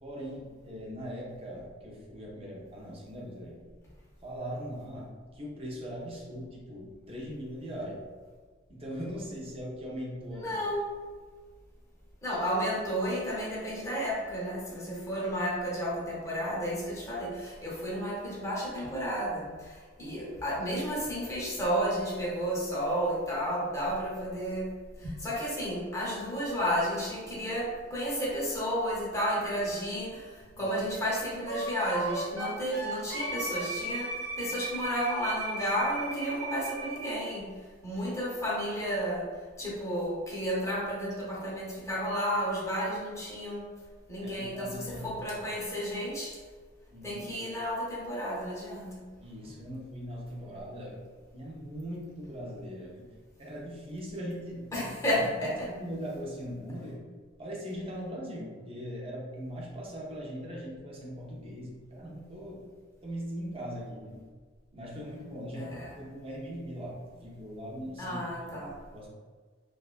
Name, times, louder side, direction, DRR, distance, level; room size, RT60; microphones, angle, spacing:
voice 1, 0.0-3.6 4.2-8.0 8.7-10.6 12.3-12.4 30.4-30.6 38.0-38.1 44.2-45.4 46.9-47.2 49.2-51.0 51.3-53.1 53.4-57.0 57.4-62.6 63.0-64.2 64.7-69.1, equal, 30° right, -3 dB, 0.6 m, -40 dB
voice 2, 10.3-10.9 12.2-24.7 25.0-37.5 37.8-39.3 39.6-43.7 44.1-46.4 47.0-49.1 54.7-55.7 65.6-65.9 68.0-68.8, equal, 15° left, -5 dB, 0.7 m, -32 dB
Wind instrument woodwind instrument, 31.5-37.1, right 2 dB, 65° right, 1.0 m, -36 dB
2.6 x 2.2 x 2.4 m, 1.5 s
head